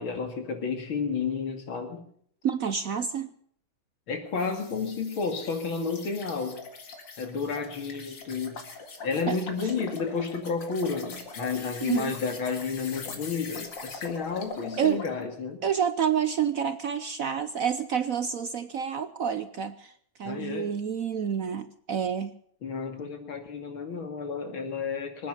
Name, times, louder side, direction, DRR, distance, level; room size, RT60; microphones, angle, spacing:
voice 1, 0.0-2.0 4.1-6.6 7.2-8.6 9.0-15.6 20.2-20.7 22.6-25.3, left 5 dB, 85° left, 5 dB, 3.3 m, -31 dB
voice 2, 2.4-3.3 9.3-9.4 11.8-12.1 14.8-15.0 15.6-19.9 20.2-22.3, right 8 dB, 60° right, 11 dB, 0.9 m, -28 dB
sound 1, 4.4-15.2, left 4 dB, 65° left, 2.7 m, -42 dB
25.0 x 9.2 x 5.6 m, 0.64 s
omnidirectional pair, 2.2 m